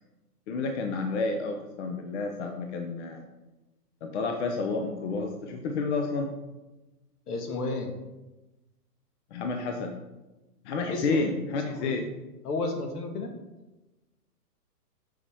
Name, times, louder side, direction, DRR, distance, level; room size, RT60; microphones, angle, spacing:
voice 1, 0.5-3.2 4.0-6.3 9.3-9.9 10.6-12.1, left 3 dB, 45° left, 4 dB, 0.8 m, -30 dB
voice 2, 7.3-7.9 10.9-11.3 11.7-11.9 12.4-13.3, left 2 dB, 70° left, 4 dB, 1.6 m, -32 dB
7.9 x 5.5 x 3.5 m, 1.1 s
hypercardioid pair, 150°, 48 cm